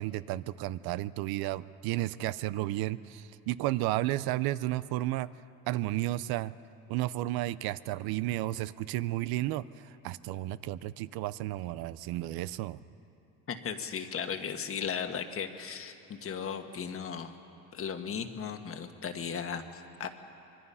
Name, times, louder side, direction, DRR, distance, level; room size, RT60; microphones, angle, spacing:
voice 1, 0.0-5.3 5.7-6.5 6.9-9.6 10.0-12.8, right 16 dB, 80° right, 16 dB, 0.6 m, -32 dB
voice 2, 13.5-17.3 17.7-20.1, left 7 dB, 40° left, 7 dB, 1.4 m, -36 dB
24.5 x 23.0 x 5.6 m, 2.7 s
cardioid pair, 125°, 36 cm